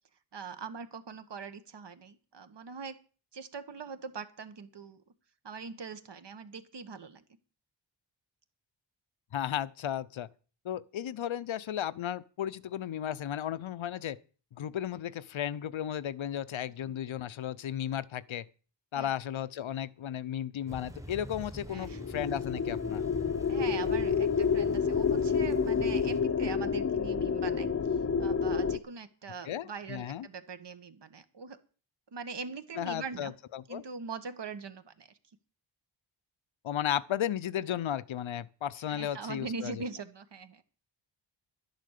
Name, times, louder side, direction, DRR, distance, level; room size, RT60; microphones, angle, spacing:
voice 1, 0.3-3.0 3.3-5.0 5.4-7.2 16.8-16.9 18.9-19.1 21.7-22.2 23.5-31.6 32.1-33.3 33.7-35.1 38.9-40.6, right 5 dB, 60° right, 1.5 m, -42 dB
voice 2, 9.3-10.3 10.6-14.2 14.5-18.5 18.9-23.1 29.4-30.3 32.8-33.8 36.6-39.7, left 10 dB, 85° left, 0.8 m, -34 dB
Thunder / Rain, 20.7-26.2, equal, 5° right, 1.2 m, -46 dB
sound 1, 21.7-28.8, left 6 dB, 30° left, 0.7 m, -29 dB
12.0 x 10.5 x 6.6 m
wide cardioid pair, 130°, 46 cm